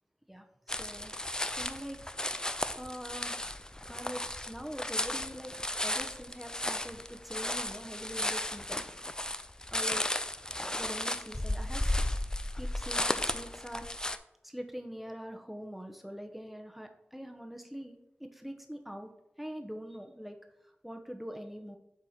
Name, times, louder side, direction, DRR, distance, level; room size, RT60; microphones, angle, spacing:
voice 1, 0.3-1.1 1.5-3.4 3.9-5.5 5.8-8.9 9.7-10.0 10.8-12.0 12.6-13.9 14.4-19.1 19.4-20.4 20.8-21.8, equal, 5° right, 5 dB, 1.0 m, -43 dB
sound 1, 0.7-14.2, left 1 dB, 20° left, 0.4 m, -34 dB
7.7 x 4.9 x 4.4 m, 0.86 s
wide cardioid pair, 55°, 4 cm